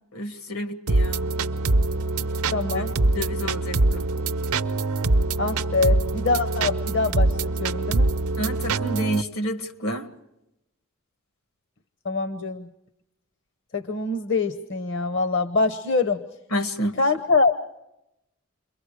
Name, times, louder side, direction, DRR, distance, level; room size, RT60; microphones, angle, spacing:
voice 1, 0.1-1.2 2.7-2.9 3.1-4.1 8.4-10.1 16.5-17.0, equal, 80° left, 8 dB, 2.0 m, -29 dB
sound 1, 0.9-9.2, right 2 dB, 85° right, 0.7 m, -24 dB
voice 2, 2.5-2.9 5.4-8.1 12.0-12.7 13.7-16.2 17.0-17.8, left 3 dB, 55° left, 7 dB, 0.9 m, -24 dB
29.0 x 23.0 x 4.9 m, 0.88 s
head